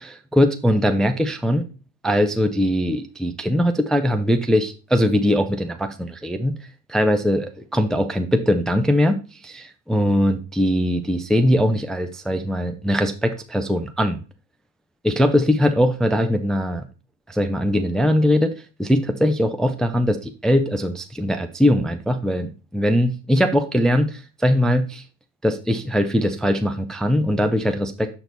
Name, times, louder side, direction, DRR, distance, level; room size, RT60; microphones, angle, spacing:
voice 1, 0.3-1.6 2.0-6.6 6.9-7.5 7.7-9.2 9.4-14.2 15.0-16.8 17.3-18.5 18.8-25.0 25.4-28.1, equal, ahead, 7 dB, 0.5 m, -21 dB
6.6 x 4.5 x 4.0 m, 0.33 s
hypercardioid pair, 60°, 47 cm